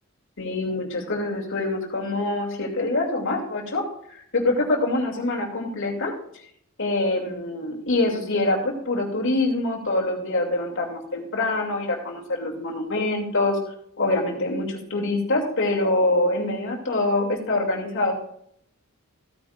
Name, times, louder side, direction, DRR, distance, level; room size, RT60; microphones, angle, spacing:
voice 1, 0.4-6.1 6.8-13.6 14.0-18.1, left 2 dB, 60° left, 0 dB, 2.6 m, -25 dB
15.5 x 9.4 x 2.5 m, 0.69 s
head